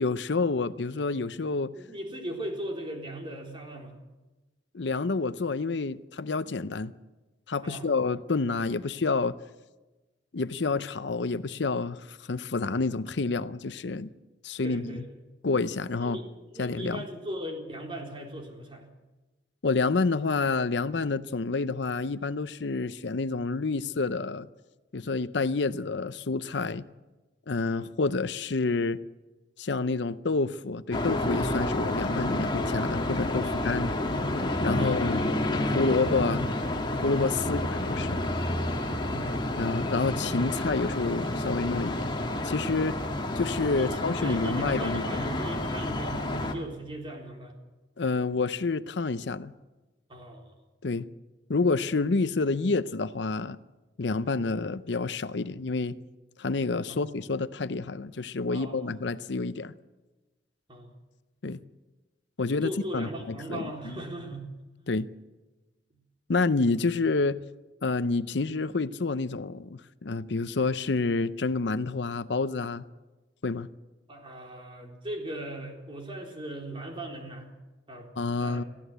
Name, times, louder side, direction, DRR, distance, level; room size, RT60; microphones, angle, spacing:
voice 1, 0.0-1.7 4.7-6.9 7.5-9.4 10.3-14.1 14.4-15.0 15.4-16.2 16.6-17.1 19.6-24.5 24.9-26.9 27.5-29.0 29.6-33.9 34.6-35.2 35.7-36.5 37.0-38.2 39.6-42.2 42.4-42.9 43.4-45.2 48.0-49.5 50.8-51.1 51.5-53.6 54.0-56.0 56.4-59.7 61.4-61.6 62.4-64.0 64.9-65.1 66.3-67.4 67.8-72.8 73.4-73.7 78.2-78.6, left 3 dB, 70° left, 0.7 m, -28 dB
voice 2, 1.6-3.9 7.6-7.9 14.6-15.0 16.0-18.9 33.4-33.7 34.8-35.6 37.4-37.5 39.0-39.4 43.7-47.5 50.1-50.5 56.9-57.1 58.5-58.9 60.7-60.9 62.4-64.5 74.1-77.4 77.9-78.1 78.4-78.7, right 1 dB, 30° right, 3.9 m, -38 dB
sound 1, 30.9-46.5, left 1 dB, 25° left, 1.9 m, -29 dB
22.5 x 15.0 x 8.1 m
head